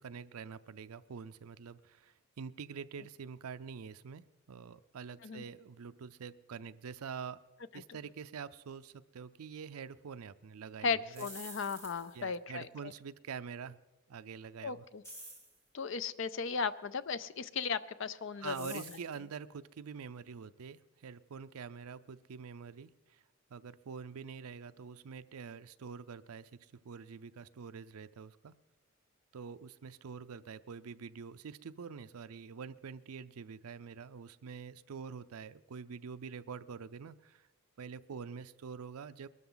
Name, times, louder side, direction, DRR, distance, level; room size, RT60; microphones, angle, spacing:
voice 1, 0.0-7.4 7.7-11.3 12.1-13.8 14.1-14.9 18.4-23.2 23.5-28.5 29.3-37.5 37.8-39.3, right 6 dB, 80° right, 13 dB, 0.5 m, -46 dB
voice 2, 10.8-12.7 14.6-15.0 15.7-18.8, left 5 dB, 55° left, 15 dB, 0.5 m, -36 dB
sound 1, 11.0-12.2 15.0-15.6 18.4-19.1, right 1 dB, 10° left, 2.5 m, -48 dB
22.0 x 13.0 x 3.9 m, 1.1 s
head